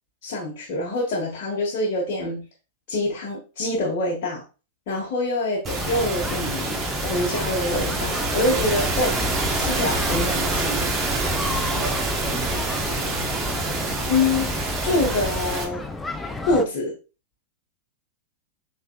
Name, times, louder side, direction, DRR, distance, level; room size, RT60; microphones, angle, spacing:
voice 1, 0.2-2.5 2.9-4.4 4.9-9.3 9.5-10.8 14.1-14.5 14.8-15.8 16.5-16.9, left 2 dB, 50° left, -3 dB, 1.6 m, -25 dB
sound 1, 5.6-15.6, right 2 dB, 25° right, 1.2 m, -26 dB
sound 2, 5.8-16.6, left 3 dB, 10° left, 0.6 m, -33 dB
voice 2, 11.7-13.4, right 2 dB, 70° right, -2 dB, 1.9 m, -38 dB
5.5 x 3.7 x 2.4 m, 0.33 s
figure-of-eight pair, 95°, 0 cm